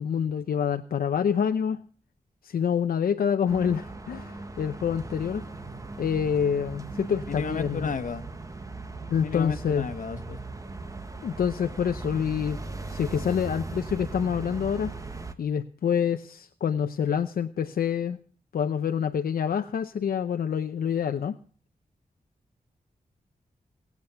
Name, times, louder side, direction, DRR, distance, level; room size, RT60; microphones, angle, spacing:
voice 1, 0.0-1.8 2.4-5.4 6.0-7.9 9.1-9.9 11.2-12.6 12.9-14.9 15.4-18.2 18.5-21.4, left 7 dB, 85° left, 7 dB, 0.7 m, -27 dB
sound 1, 3.5-15.3, right 3 dB, 20° right, 1.3 m, -38 dB
voice 2, 7.3-8.3 9.2-10.4, left 5 dB, 65° left, 8 dB, 1.4 m, -32 dB
19.0 x 8.3 x 6.9 m, 0.43 s
wide cardioid pair, 120°, 15 cm